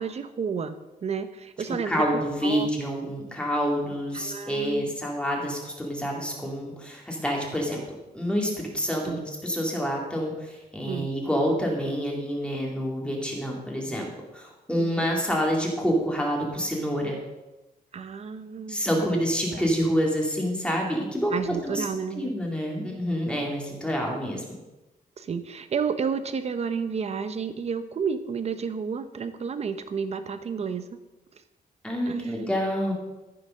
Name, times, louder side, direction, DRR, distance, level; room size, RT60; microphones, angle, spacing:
voice 1, 0.0-2.7 4.1-4.8 9.1-9.2 10.9-11.1 14.8-15.1 17.9-19.2 19.5-19.7 21.3-22.3 25.2-31.0 32.1-32.4, right 6 dB, 40° right, 11 dB, 0.8 m, -31 dB
voice 2, 1.8-7.8 8.1-14.1 14.3-17.2 18.7-21.3 21.6-21.8 22.2-24.6 31.8-32.9, equal, 5° left, -1 dB, 2.3 m, -27 dB
14.0 x 6.9 x 6.4 m, 1.0 s
wide cardioid pair, 175°, 16 cm